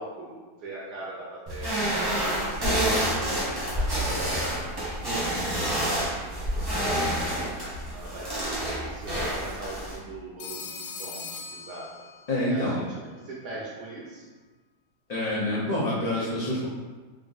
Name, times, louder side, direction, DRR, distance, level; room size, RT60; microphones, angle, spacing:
voice 1, 0.0-3.3 3.7-4.5 5.1-5.8 6.4-7.3 7.9-12.0 12.5-14.2, right 2 dB, 90° right, -6 dB, 1.3 m, -41 dB
sound 1, 1.5-10.0, right 1 dB, 20° right, 0.8 m, -28 dB
Telephone, 10.4-12.5, left 5 dB, 80° left, 1.1 m, -40 dB
voice 2, 12.3-12.8 15.1-16.7, left 1 dB, 60° left, -9 dB, 0.4 m, -27 dB
3.5 x 2.5 x 3.9 m, 1.3 s
omnidirectional pair, 1.7 m